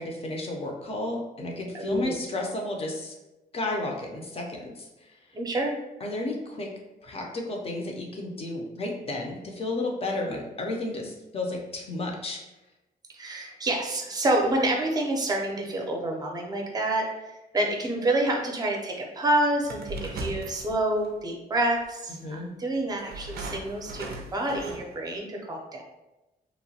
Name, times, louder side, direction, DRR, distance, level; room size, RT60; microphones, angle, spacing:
voice 1, 0.0-3.1 3.5-4.9 6.0-6.7 7.0-12.4 22.2-22.5, left 2 dB, 40° left, 1 dB, 0.6 m, -32 dB
voice 2, 1.7-2.2 5.3-5.7 13.1-25.8, right 1 dB, 25° right, 1 dB, 0.6 m, -28 dB
sound 1, 19.6-21.2 22.1-22.2 23.0-25.1, right 3 dB, 85° right, 0.4 m, -38 dB
3.0 x 2.1 x 2.7 m, 1.0 s
cardioid pair, 105°, 16 cm